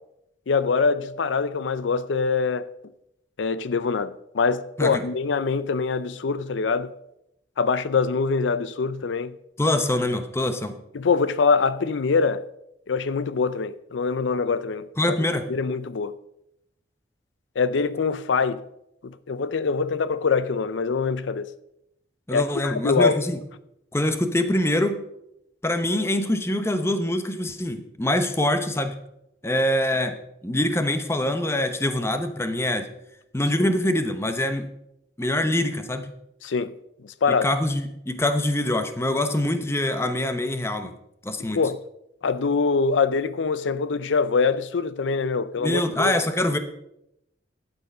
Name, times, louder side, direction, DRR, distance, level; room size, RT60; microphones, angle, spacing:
voice 1, 0.5-2.7 3.4-6.9 7.6-9.3 10.9-12.4 12.9-15.2 15.5-16.2 17.6-18.6 19.0-21.5 22.3-23.2 33.6-33.7 36.4-36.7 37.0-37.5 41.5-41.8 42.2-46.2, left 4 dB, 85° left, 0.5 m, -24 dB
voice 2, 9.6-10.8 15.0-15.5 22.3-23.4 23.9-25.0 25.6-29.0 29.4-30.2 30.4-32.9 33.3-34.7 35.2-36.1 37.3-40.9 41.2-41.6 45.6-46.6, left 1 dB, 15° left, 0.9 m, -24 dB
12.0 x 9.0 x 5.4 m
head